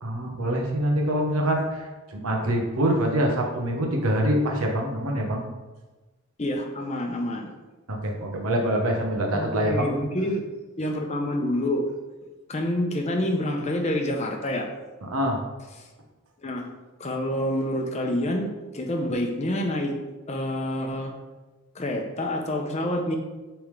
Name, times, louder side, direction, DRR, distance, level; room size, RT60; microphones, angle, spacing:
voice 1, 0.0-1.9 2.1-5.4 7.9-9.9 15.1-15.4, right 1 dB, 80° right, 1 dB, 1.1 m, -25 dB
voice 2, 6.4-7.5 9.3-10.4 10.8-11.8 12.5-14.7 16.4-16.6 17.0-19.9 20.3-21.1 21.7-23.2, left 1 dB, 30° left, 3 dB, 0.6 m, -27 dB
8.7 x 3.5 x 3.3 m, 1.2 s
head